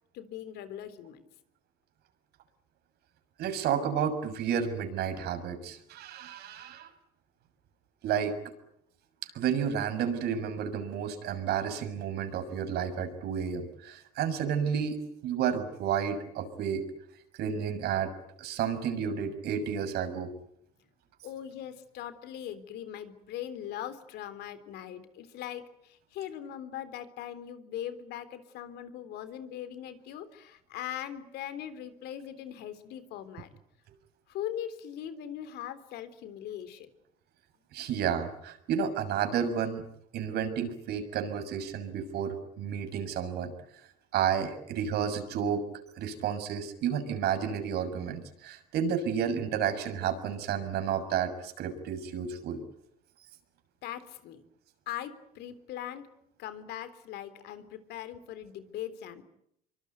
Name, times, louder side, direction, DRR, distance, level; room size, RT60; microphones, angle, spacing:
voice 1, 0.1-1.3 21.2-33.5 34.3-36.9 53.8-54.4 54.9-56.1 56.4-59.2, left 10 dB, 70° left, 12 dB, 3.6 m, -40 dB
voice 2, 3.4-6.9 8.0-8.3 9.3-15.0 15.2-16.8 17.4-18.1 18.4-20.3 37.7-39.8 40.1-43.5 44.1-45.6 46.0-52.6, right 8 dB, 65° right, 9 dB, 6.6 m, -31 dB
25.5 x 24.0 x 9.5 m, 0.73 s
supercardioid pair, 85°, 18 cm